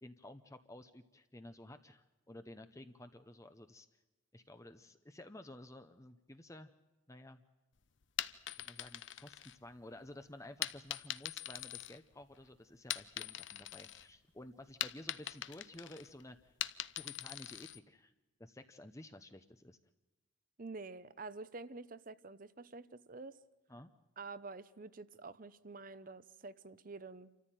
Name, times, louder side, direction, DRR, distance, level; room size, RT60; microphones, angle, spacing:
voice 1, 0.0-3.9 4.3-6.7 7.1-7.4 8.6-16.5 17.0-18.1 18.4-19.8 23.7-23.9, left 1 dB, 15° left, 9 dB, 0.8 m, -53 dB
sound 1, 8.0-10.0 10.6-12.4 12.7-14.1 14.4-17.8, left 12 dB, 70° left, 0.8 m, -42 dB
voice 2, 20.6-23.4 24.2-27.3, right 3 dB, 45° right, 15 dB, 0.9 m, -48 dB
28.5 x 14.0 x 9.1 m, 1.1 s
head